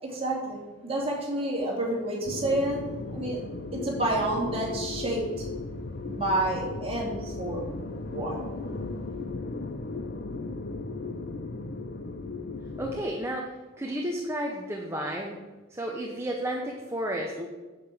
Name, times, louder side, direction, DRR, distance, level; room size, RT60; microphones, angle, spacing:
voice 1, 0.0-2.8 3.1-3.4 3.7-5.5 6.1-7.6 8.1-8.5, right 1 dB, 30° right, -3 dB, 3.0 m, -29 dB
sound 1, 2.2-13.0, left 3 dB, 50° left, 0.6 m, -36 dB
voice 2, 12.8-13.5 13.8-15.4 15.7-17.5, right 1 dB, 10° right, 0 dB, 0.9 m, -32 dB
8.4 x 7.8 x 7.1 m, 1.2 s
head